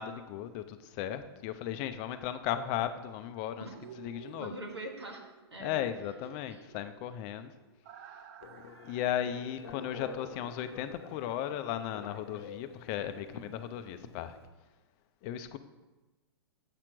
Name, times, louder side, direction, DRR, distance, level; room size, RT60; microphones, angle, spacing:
voice 1, 0.0-3.7 4.0-4.5 5.6-7.5 8.8-14.4 15.2-15.6, left 10 dB, 35° left, 10 dB, 0.5 m, -36 dB
sound 1, 3.7-11.6 11.9-12.0, right 8 dB, 50° right, 0.7 m, -54 dB
voice 2, 4.4-5.7 6.5-6.7 15.2-15.6, right 2 dB, 90° right, 1 dB, 1.6 m, -44 dB
Telephone, 8.4-14.5, left 5 dB, 75° left, 0.8 m, -49 dB
7.6 x 4.4 x 6.1 m, 1.2 s
hypercardioid pair, 115°, 13 cm